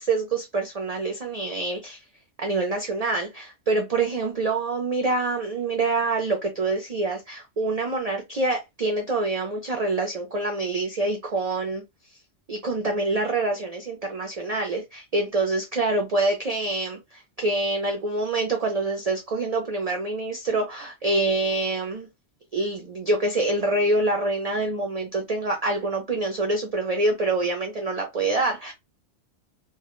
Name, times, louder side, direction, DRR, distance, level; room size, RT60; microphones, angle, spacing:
voice 1, 0.0-2.0 2.4-11.8 12.5-22.1 22.5-28.7, right 2 dB, 55° right, 0.4 m, -26 dB
2.3 x 2.0 x 2.9 m
omnidirectional pair, 1.3 m